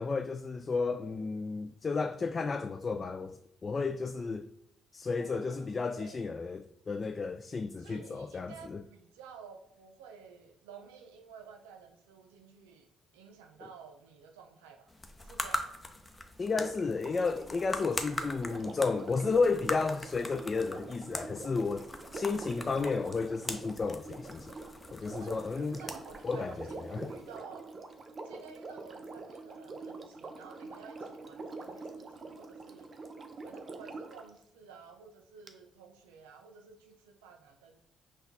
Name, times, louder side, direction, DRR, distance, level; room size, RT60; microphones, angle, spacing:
voice 1, 0.0-4.5 4.9-8.8 16.4-21.9 22.1-24.5 24.9-25.8 26.2-27.1, left 4 dB, 40° left, 0.3 m, -32 dB
voice 2, 5.1-6.3 7.8-12.9 13.1-14.9 15.2-15.8 25.2-27.7 28.2-32.9 33.4-37.8, right 6 dB, 85° right, 0.4 m, -53 dB
sound 1, 14.9-27.4, left 2 dB, 20° left, 0.7 m, -42 dB
Sink (filling or washing), 16.5-34.3 35.5-35.6, right 3 dB, 45° right, 0.6 m, -45 dB
5.7 x 2.3 x 3.9 m
hypercardioid pair, 50°, 0 cm